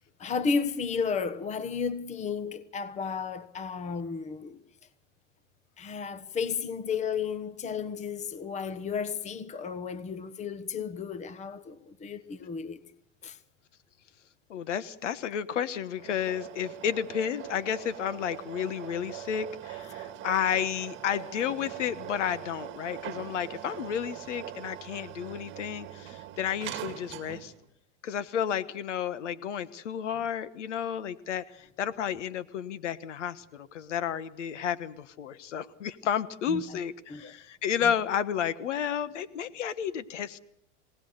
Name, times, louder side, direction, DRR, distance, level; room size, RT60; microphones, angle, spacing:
voice 1, 0.2-4.6 5.8-12.8 13.2-13.4 36.5-36.8 37.1-37.3 37.8-37.9, left 5 dB, 20° left, 1.2 m, -33 dB
voice 2, 14.5-27.5 28.0-40.4, left 8 dB, 85° left, 1.4 m, -32 dB
sound 1, 15.9-27.6, right 12 dB, 35° right, 1.9 m, -42 dB
26.0 x 18.5 x 6.7 m
supercardioid pair, 135°, 35 cm